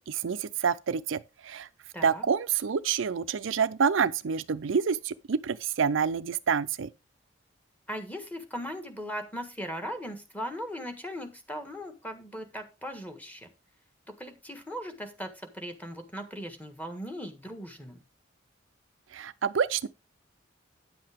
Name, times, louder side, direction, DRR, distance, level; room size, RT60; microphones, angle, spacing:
voice 1, 0.1-1.7 2.0-6.9 19.1-19.9, right 6 dB, 80° right, 0.5 m, -28 dB
voice 2, 1.9-2.2 7.9-13.5 14.1-18.0, equal, 10° left, 1.5 m, -38 dB
9.5 x 7.7 x 3.5 m
head